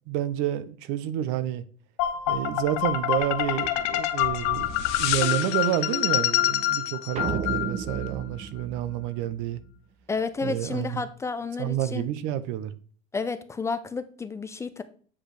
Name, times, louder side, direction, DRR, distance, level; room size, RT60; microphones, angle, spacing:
voice 1, 0.1-1.6 2.3-9.6 10.4-11.0 11.6-12.7, right 12 dB, 70° right, 0.8 m, -29 dB
sound 1, 2.0-8.1, left 12 dB, 80° left, 0.9 m, -26 dB
sound 2, 7.2-9.6, right 6 dB, 35° right, 0.6 m, -33 dB
voice 2, 10.1-12.1 13.1-14.8, left 4 dB, 15° left, 0.5 m, -31 dB
8.4 x 5.1 x 3.4 m
cardioid pair, 145°, 20 cm